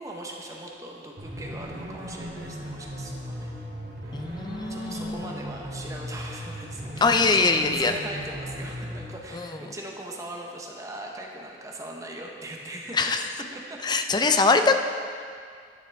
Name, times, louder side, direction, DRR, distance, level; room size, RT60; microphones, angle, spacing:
voice 1, 0.0-3.7 4.0-13.1 13.5-14.0 14.3-14.5, right 1 dB, 20° right, -1 dB, 1.0 m, -40 dB
sound 1, 1.2-9.1, equal, 85° right, 2.4 m, -37 dB
voice 2, 4.1-5.3 7.0-7.9 9.3-9.5 12.9-13.2 13.8-14.7, left 3 dB, 25° left, 7 dB, 0.4 m, -22 dB
11.0 x 9.4 x 3.5 m, 2.2 s
head